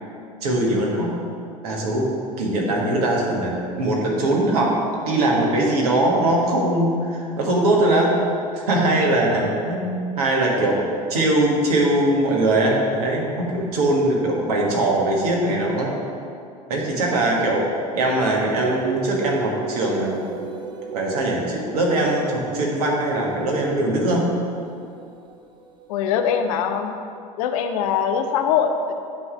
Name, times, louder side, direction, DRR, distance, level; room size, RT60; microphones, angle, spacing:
voice 1, 0.4-1.1 1.6-2.1 2.4-4.8 5.0-8.2 8.5-10.8 11.1-15.9 16.7-20.3 20.9-24.3, right 1 dB, 65° right, -2 dB, 1.5 m, -21 dB
sound 1, 18.6-26.1, right 3 dB, 20° right, 0.7 m, -35 dB
voice 2, 25.9-27.0 27.4-28.9, left 7 dB, 60° left, 6 dB, 0.6 m, -22 dB
9.4 x 3.3 x 5.6 m, 2.4 s
figure-of-eight pair, 80°, 21 cm